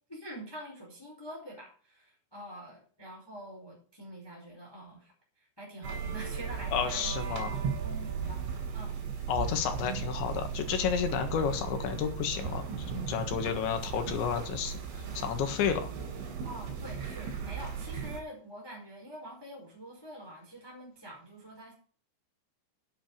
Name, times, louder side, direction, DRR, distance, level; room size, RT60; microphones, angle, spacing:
voice 1, 0.1-5.1 5.4-8.4 8.7-9.0 16.4-21.7, right 1 dB, 5° left, -2 dB, 4.1 m, -46 dB
sound 1, 5.8-18.2, right 6 dB, 75° right, 5.4 m, -36 dB
voice 2, 6.7-7.6 9.3-14.8 15.2-15.9, left 8 dB, 75° left, 6 dB, 3.7 m, -31 dB
9.1 x 8.3 x 7.8 m, 0.43 s
omnidirectional pair, 5.6 m